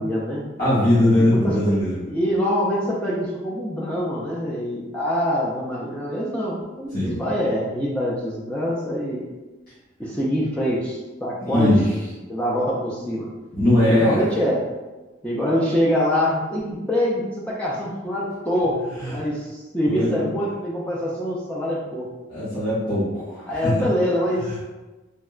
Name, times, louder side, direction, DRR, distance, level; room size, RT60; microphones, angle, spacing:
voice 1, 0.0-0.4 1.2-1.7 2.1-9.2 10.0-11.9 12.3-13.3 13.9-14.6 15.2-22.1 23.5-24.6, equal, 5° left, -6 dB, 0.3 m, -25 dB
voice 2, 0.6-2.0 6.9-7.2 11.5-11.8 13.5-14.4 19.0-19.1 19.9-20.2 22.3-23.7, left 1 dB, 55° left, -15 dB, 1.2 m, -20 dB
3.6 x 2.1 x 2.3 m, 1.1 s
head